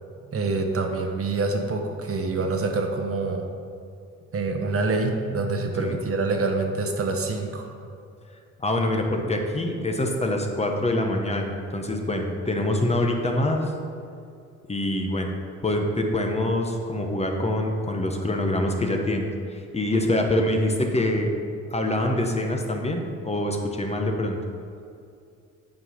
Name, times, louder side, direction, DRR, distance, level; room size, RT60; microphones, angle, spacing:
voice 1, 0.3-3.4 4.3-7.8, right 3 dB, 50° right, 3 dB, 1.1 m, -26 dB
voice 2, 8.6-13.7 14.7-15.3 15.6-21.3 21.7-24.4, left 1 dB, 20° left, 2 dB, 0.9 m, -25 dB
8.7 x 4.7 x 5.6 m, 2.4 s
cardioid pair, 90°, 30 cm